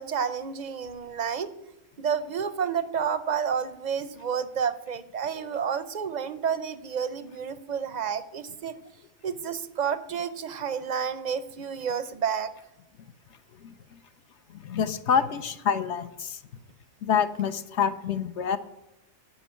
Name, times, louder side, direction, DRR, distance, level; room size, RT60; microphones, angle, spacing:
voice 1, 0.0-1.5 2.0-8.8 9.2-12.5, right 7 dB, 50° right, 13 dB, 0.5 m, -30 dB
voice 2, 14.5-16.4 17.0-18.6, left 7 dB, 70° left, 10 dB, 0.9 m, -27 dB
10.5 x 5.3 x 8.4 m, 0.92 s
omnidirectional pair, 1.3 m